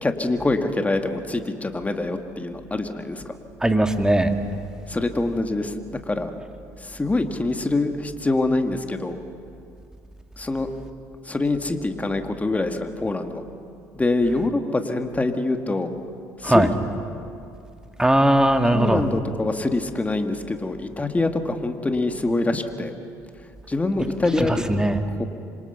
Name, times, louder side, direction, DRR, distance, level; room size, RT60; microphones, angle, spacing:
voice 1, 0.0-3.4 4.9-6.3 6.8-9.2 10.4-10.7 11.3-13.5 13.9-15.9 16.4-16.7 18.7-22.9 23.7-24.6 25.1-25.3, left 2 dB, 15° left, 6 dB, 2.2 m, -25 dB
voice 2, 3.6-4.3 16.4-16.7 18.0-19.0 24.4-25.0, right 1 dB, 10° right, 6 dB, 2.0 m, -19 dB
26.0 x 26.0 x 5.9 m, 2.5 s
hypercardioid pair, 60°, 9 cm